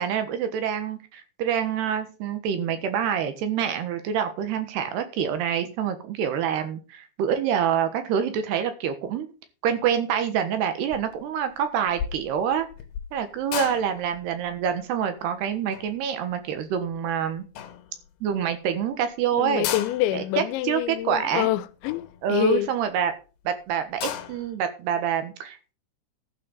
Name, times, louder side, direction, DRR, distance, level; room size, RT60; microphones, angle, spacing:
voice 1, 0.0-9.3 9.6-12.7 13.1-17.5 18.2-19.7 20.1-21.5 22.2-23.1 23.4-25.7, right 8 dB, 70° right, 3.3 m, -26 dB
sound 1, 10.9-11.2 11.5-17.1 17.5-18.3 18.8-18.9 19.0-19.1 19.4-23.0 23.5-23.6 23.8-24.6, left 9 dB, 70° left, 3.3 m, -36 dB
voice 2, 19.4-22.7, left 15 dB, 85° left, 3.1 m, -26 dB
12.0 x 6.5 x 7.0 m
omnidirectional pair, 5.2 m